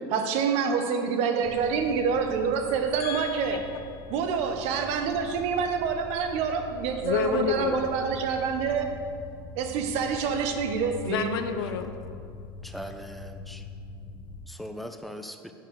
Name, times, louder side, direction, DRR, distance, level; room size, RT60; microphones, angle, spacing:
voice 1, 0.1-3.6 4.1-8.9 9.6-11.3, right 6 dB, 60° right, 6 dB, 1.1 m, -27 dB
sound 1, 1.4-14.5, left 2 dB, 40° left, 1.4 m, -43 dB
voice 2, 3.0-4.2 7.0-7.9 11.0-11.9, left 8 dB, 80° left, 9 dB, 0.8 m, -30 dB
voice 3, 12.6-13.6 14.5-15.5, equal, ahead, 7 dB, 0.7 m, -40 dB
9.4 x 5.7 x 6.7 m, 2.3 s
hypercardioid pair, 90°, 12 cm